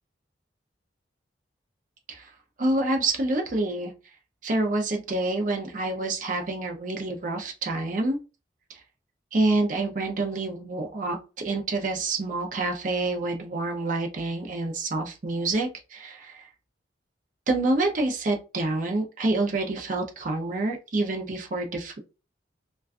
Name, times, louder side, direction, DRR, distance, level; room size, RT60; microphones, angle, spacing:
voice 1, 2.6-3.9 4.4-8.2 8.7-8.8 9.3-16.5 17.5-22.0, right 2 dB, 45° right, 3 dB, 0.5 m, -27 dB
2.4 x 2.2 x 2.3 m, 0.30 s
head